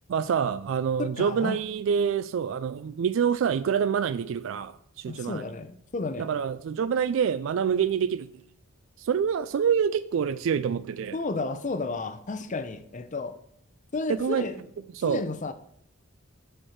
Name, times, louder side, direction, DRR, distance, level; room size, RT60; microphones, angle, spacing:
voice 1, 0.1-5.4 6.2-8.3 9.0-11.2 14.1-14.5 14.9-15.2, right 7 dB, 70° right, 0.3 m, -26 dB
voice 2, 1.0-1.6 5.1-6.3 11.1-13.4 13.9-14.6 15.0-15.5, left 3 dB, 40° left, 0.6 m, -32 dB
7.7 x 4.4 x 6.4 m
head